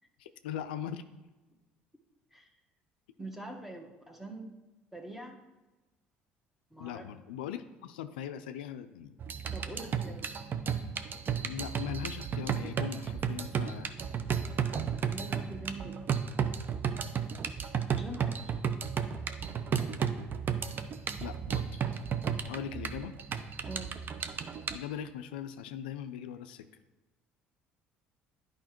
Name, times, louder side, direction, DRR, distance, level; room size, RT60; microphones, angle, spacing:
voice 1, 0.2-1.0 6.8-9.2 11.4-13.9 21.2-22.0 22.5-23.2 24.7-26.7, left 9 dB, 85° left, 9 dB, 0.3 m, -40 dB
voice 2, 3.2-4.5 4.9-5.4 6.7-7.1 9.5-10.3 15.1-16.3 17.9-18.5 23.6-23.9, right 2 dB, 5° right, 3 dB, 1.2 m, -44 dB
sound 1, 9.2-24.8, right 7 dB, 45° right, 0.5 m, -33 dB
11.0 x 4.9 x 2.9 m, 1.1 s
hypercardioid pair, 65°, 5 cm